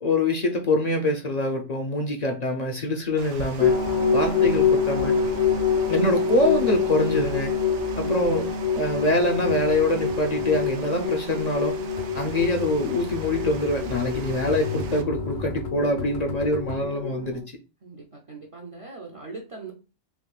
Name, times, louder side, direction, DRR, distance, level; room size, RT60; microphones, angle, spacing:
voice 1, 0.0-3.7 4.1-5.2 5.9-7.5 8.0-8.5 8.7-11.8 12.2-17.4, left 1 dB, 50° left, 3 dB, 0.5 m, -24 dB
Water, 3.2-15.0, right 5 dB, 85° right, 0.9 m, -42 dB
sound 1, 3.6-17.4, left 5 dB, 90° left, 1.3 m, -26 dB
sound 2, 4.4-16.8, left 3 dB, 70° left, 0.9 m, -39 dB
voice 2, 17.8-19.7, right 4 dB, 40° right, 0 dB, 0.5 m, -41 dB
3.6 x 3.0 x 2.3 m, 0.32 s
omnidirectional pair, 1.2 m